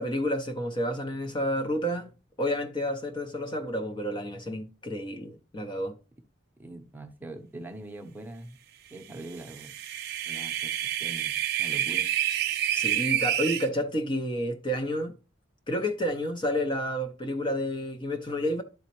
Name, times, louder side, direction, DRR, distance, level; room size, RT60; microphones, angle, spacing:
voice 1, 0.0-2.1 2.4-6.0 12.7-15.2 15.7-18.6, equal, 25° left, 0.6 m, -30 dB
voice 2, 6.6-8.6 8.9-9.7 10.2-12.1, right 2 dB, 10° right, 0.8 m, -43 dB
sound 1, 9.4-13.7, right 11 dB, 55° right, 0.8 m, -28 dB
11.5 x 4.1 x 3.0 m
head